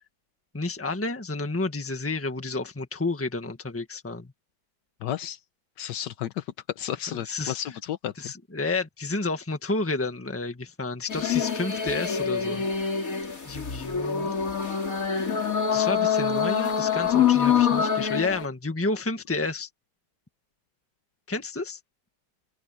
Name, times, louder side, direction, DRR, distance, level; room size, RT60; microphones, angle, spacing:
voice 1, 0.5-4.3 7.1-7.6 8.2-12.7 13.5-14.4 15.7-19.7 21.3-21.8, left 3 dB, 10° left, 1.5 m, -30 dB
voice 2, 5.0-5.4 5.8-6.4 6.8-8.3, left 11 dB, 85° left, 1.5 m, -32 dB
sound 1, 11.1-18.4, left 7 dB, 50° left, 3.0 m, -25 dB
open air
omnidirectional pair, 1.8 m